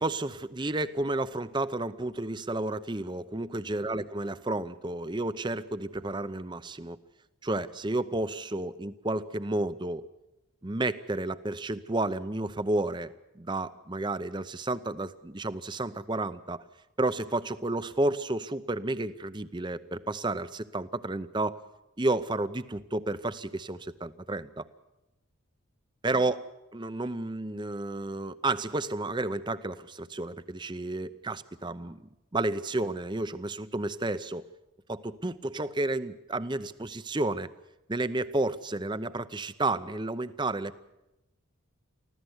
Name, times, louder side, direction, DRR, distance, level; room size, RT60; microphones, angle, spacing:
voice 1, 0.0-7.0 7.4-10.1 10.6-16.6 17.0-21.6 22.0-24.7 26.0-26.4 26.7-32.1 32.3-34.4 34.9-37.5 37.9-40.8, right 2 dB, 20° right, 13 dB, 0.7 m, -31 dB
24.5 x 16.0 x 8.0 m, 0.94 s
head